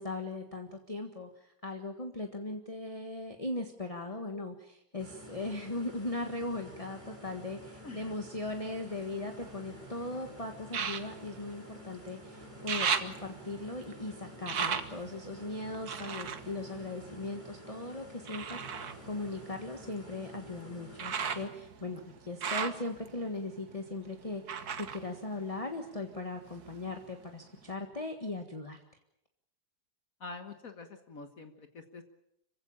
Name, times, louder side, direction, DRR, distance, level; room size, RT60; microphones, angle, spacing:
voice 1, 0.0-28.8, left 2 dB, 20° left, 5 dB, 1.6 m, -39 dB
sound 1, 5.0-21.4, equal, 20° right, 6.8 m, -50 dB
sound 2, 8.5-9.9 10.7-12.2 12.4-17.6 18.3-26.1 26.4-27.2 27.7-27.8, right 6 dB, 65° right, 1.9 m, -38 dB
voice 2, 30.2-32.0, left 3 dB, 60° left, 7 dB, 1.8 m, -46 dB
26.0 x 16.5 x 8.8 m, 0.79 s
omnidirectional pair, 1.8 m